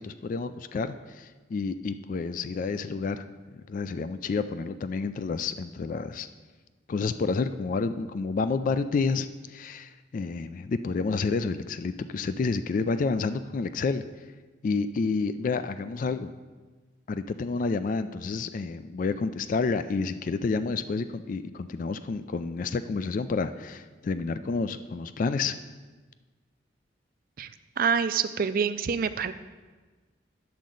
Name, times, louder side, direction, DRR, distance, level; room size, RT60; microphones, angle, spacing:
voice 1, 0.0-3.2 3.7-6.3 6.9-14.0 14.6-16.3 17.1-25.6, left 4 dB, 45° left, 12 dB, 0.3 m, -29 dB
voice 2, 27.8-29.3, right 6 dB, 50° right, 11 dB, 0.4 m, -26 dB
10.5 x 7.4 x 3.9 m, 1.3 s
head